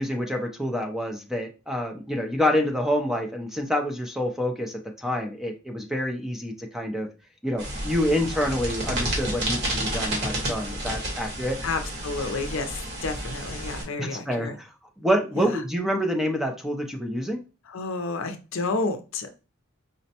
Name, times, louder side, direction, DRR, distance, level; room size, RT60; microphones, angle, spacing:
voice 1, 0.0-7.1 7.4-11.6 14.0-14.7 15.0-17.4, equal, ahead, 2 dB, 0.4 m, -27 dB
sound 1, 7.6-13.8, right 1 dB, 55° right, 1.3 m, -30 dB
voice 2, 11.6-14.6 15.4-15.6 17.6-19.3, left 3 dB, 65° left, 7 dB, 0.5 m, -30 dB
5.0 x 2.1 x 2.8 m, 0.32 s
head